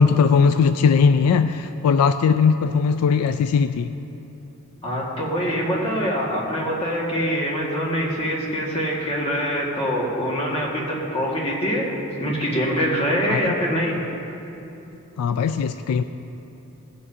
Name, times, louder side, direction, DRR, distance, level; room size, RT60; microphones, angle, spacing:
voice 1, 0.0-3.9 13.3-13.5 15.2-16.0, left 5 dB, 75° left, 10 dB, 0.3 m, -19 dB
voice 2, 4.8-11.9 12.2-14.0, equal, 25° left, -4 dB, 1.8 m, -24 dB
17.0 x 7.7 x 2.7 m, 2.9 s
head